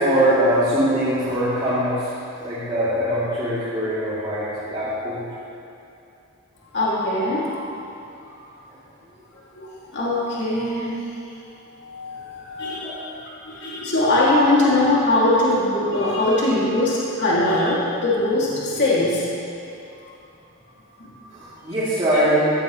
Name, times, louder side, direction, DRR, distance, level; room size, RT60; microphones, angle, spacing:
voice 1, 0.0-5.3 8.7-8.8 12.8-13.0 21.3-22.4, right 1 dB, 25° right, -13 dB, 3.1 m, -22 dB
voice 2, 6.7-8.0 9.5-10.9 11.7-13.1 13.4-19.2 21.0-21.1, left 2 dB, 50° left, -7 dB, 2.7 m, -21 dB
15.0 x 14.0 x 3.2 m, 2.7 s
head